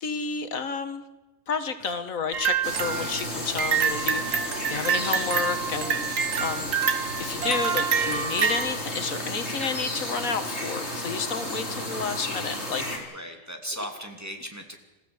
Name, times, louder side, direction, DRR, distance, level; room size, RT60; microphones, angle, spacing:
voice 1, 0.0-1.0 1.5-6.7 7.2-13.2, left 5 dB, 85° left, 9 dB, 1.9 m, -31 dB
sound 1, 2.3-8.7, right 7 dB, 75° right, 1.7 m, -27 dB
voice 2, 2.4-3.2 13.1-14.8, equal, 10° right, 3 dB, 2.8 m, -38 dB
sound 2, 2.6-13.0, left 1 dB, 55° left, 4.5 m, -33 dB
27.5 x 15.0 x 7.9 m, 1.1 s
omnidirectional pair, 1.4 m